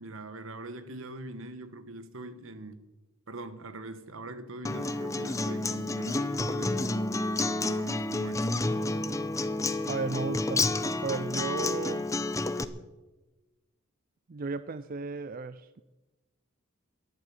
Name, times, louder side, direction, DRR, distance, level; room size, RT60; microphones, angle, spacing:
voice 1, 0.0-2.9 3.3-8.5, right 2 dB, 70° right, 1.2 m, -43 dB
Acoustic guitar, 4.6-12.6, left 2 dB, 15° left, 0.6 m, -30 dB
voice 2, 9.9-10.7 11.0-12.1 14.3-15.8, right 4 dB, 40° right, 0.4 m, -34 dB
11.5 x 11.0 x 9.2 m
head